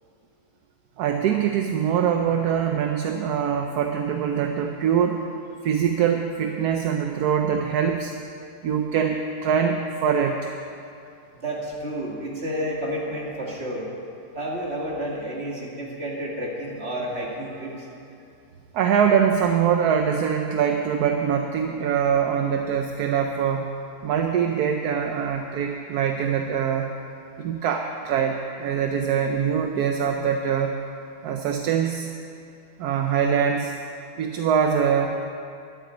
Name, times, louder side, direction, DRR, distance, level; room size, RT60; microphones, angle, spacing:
voice 1, 1.0-5.3 5.6-8.1 8.6-10.5 18.7-23.7 24.0-26.9 27.4-30.7 31.2-32.1 32.8-33.7 34.2-35.2, right 7 dB, 75° right, 4 dB, 1.2 m, -23 dB
voice 2, 11.3-13.9 14.4-17.9, equal, 40° right, -3 dB, 2.4 m, -30 dB
12.0 x 8.3 x 8.2 m, 2.6 s
omnidirectional pair, 1.8 m